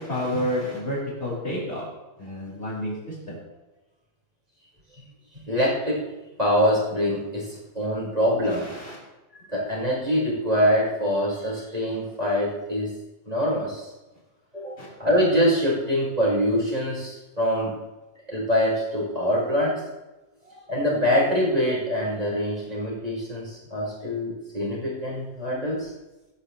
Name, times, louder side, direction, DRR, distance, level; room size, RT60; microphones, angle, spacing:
voice 1, 0.0-1.8 2.2-3.4 8.5-9.0 14.8-14.9, left 1 dB, 20° left, -4 dB, 6.7 m, -30 dB
voice 2, 5.5-6.1 6.4-8.7 9.5-12.9 13.3-13.9 14.5-17.8 18.3-19.8 20.5-25.9, equal, 10° right, -6 dB, 5.7 m, -24 dB
26.0 x 11.5 x 3.4 m, 1.0 s
omnidirectional pair, 3.6 m